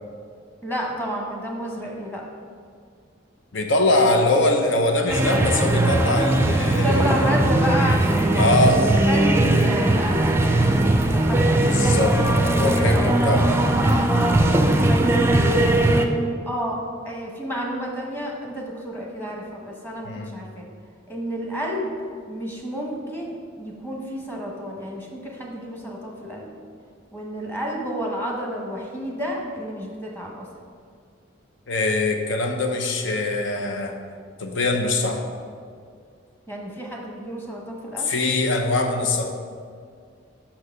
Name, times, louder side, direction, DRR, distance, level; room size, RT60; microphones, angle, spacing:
voice 1, 0.6-2.2 6.7-11.8 12.9-13.3 14.2-14.5 14.9-16.1 16.5-16.8 17.0-20.7 21.1-21.9 22.3-26.5 27.1-30.5 36.5-38.1, equal, 10° left, -1 dB, 1.2 m, -30 dB
voice 2, 3.5-7.3 8.3-8.9 11.6-14.1 20.0-20.3 31.7-33.9 34.4-35.2 38.0-39.2, left 2 dB, 75° left, 3 dB, 0.8 m, -22 dB
sound 1, 5.1-16.1, right 1 dB, 15° right, 0.4 m, -19 dB
5.9 x 4.7 x 6.5 m, 2.2 s
head